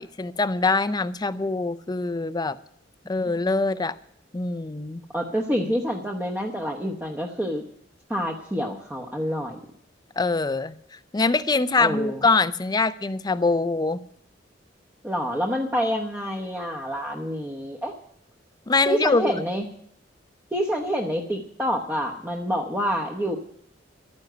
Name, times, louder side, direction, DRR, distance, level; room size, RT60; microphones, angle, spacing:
voice 1, 0.0-2.6 3.1-3.9 4.3-5.0 10.2-10.7 11.1-14.0 18.7-19.3, left 3 dB, 20° left, 0.5 m, -23 dB
voice 2, 5.1-7.6 8.1-9.6 11.8-12.2 15.0-17.9 18.9-19.6 20.5-23.4, equal, 10° right, 0.9 m, -27 dB
12.0 x 9.7 x 7.8 m
head